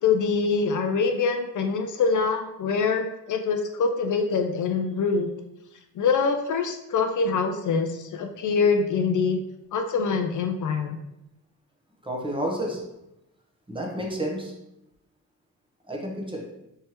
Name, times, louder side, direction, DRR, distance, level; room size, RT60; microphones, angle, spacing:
voice 1, 0.0-5.3 6.0-9.4 9.7-11.0, left 5 dB, 60° left, 6 dB, 0.5 m, -24 dB
voice 2, 12.0-12.8 13.7-14.5 15.9-16.4, right 1 dB, 15° right, -1 dB, 1.0 m, -30 dB
4.4 x 3.3 x 3.0 m, 0.86 s
cardioid pair, 100°, 34 cm